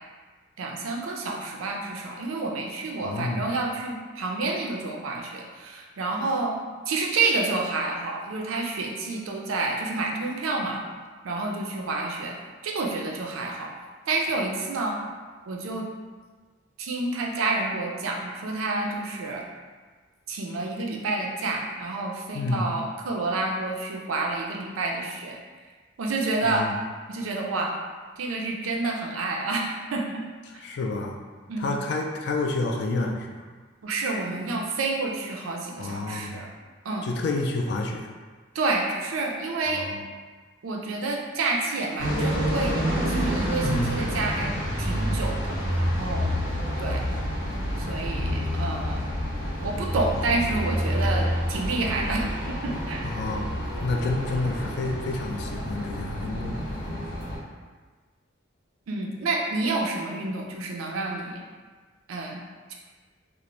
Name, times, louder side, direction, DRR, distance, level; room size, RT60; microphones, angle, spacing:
voice 1, 0.6-6.5 6.9-10.8 11.2-12.4 12.6-13.7 14.1-15.0 15.5-15.9 16.8-19.5 20.3-25.4 26.0-26.7 27.1-27.8 28.2-30.2 31.5-31.8 33.8-36.5 36.8-37.1 38.5-39.9 40.6-46.3 46.8-47.0 47.8-49.1 49.6-53.0 58.9-61.4 62.1-62.4 62.7-62.8, right 3 dB, 85° right, 0 dB, 0.4 m, -29 dB
voice 2, 3.0-3.5 22.3-22.7 26.4-26.8 30.5-31.2 31.6-33.4 35.8-36.4 37.0-38.1 39.7-40.0 43.6-44.0 53.0-56.6, left 2 dB, 55° left, 1 dB, 0.3 m, -29 dB
sound 1, 42.0-57.4, equal, 80° left, 0.8 m, -28 dB
2.5 x 2.0 x 2.9 m, 1.4 s
head